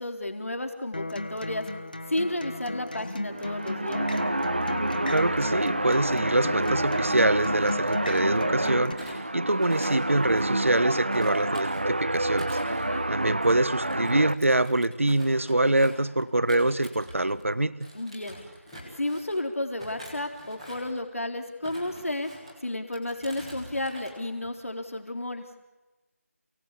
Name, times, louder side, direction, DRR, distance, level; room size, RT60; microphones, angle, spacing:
voice 1, 0.0-1.6 2.1-4.1 12.7-13.1 17.9-18.4 19.0-22.3 22.6-25.5, left 1 dB, 60° left, 3.8 m, -32 dB
Acoustic guitar, 0.9-8.9, left 2 dB, 35° left, 1.5 m, -35 dB
sound 1, 3.2-14.3, right 1 dB, 35° right, 0.8 m, -28 dB
voice 2, 5.1-17.9, right 2 dB, 60° right, 1.2 m, -25 dB
Thump thud, 8.9-10.7 11.1-17.5 17.8-19.4 19.8-21.0 21.5-22.5 22.9-24.1 24.4-24.8, equal, ahead, 1.4 m, -46 dB
29.0 x 18.5 x 8.4 m
figure-of-eight pair, 180°, 8 cm